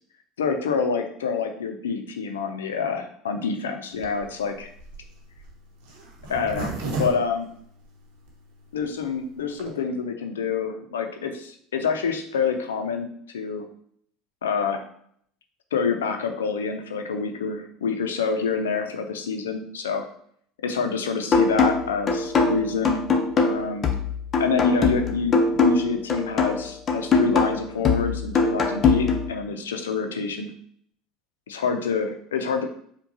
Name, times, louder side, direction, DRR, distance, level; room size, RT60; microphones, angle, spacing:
voice 1, 0.4-4.7 6.3-6.7 7.0-7.5 8.7-13.7 14.4-14.9 15.7-20.0 20.6-23.1 23.4-23.9 24.4-30.5 31.5-32.7, left 5 dB, 90° left, 5 dB, 0.4 m, -27 dB
Zipper (clothing), 4.0-8.3 8.8-8.9 9.1-9.2 9.4-9.7, right 2 dB, 70° right, 0.8 m, -33 dB
sound 1, 21.3-29.3, left 4 dB, 40° left, 0.6 m, -22 dB
4.5 x 2.2 x 2.7 m, 0.63 s
hypercardioid pair, 75°, 0 cm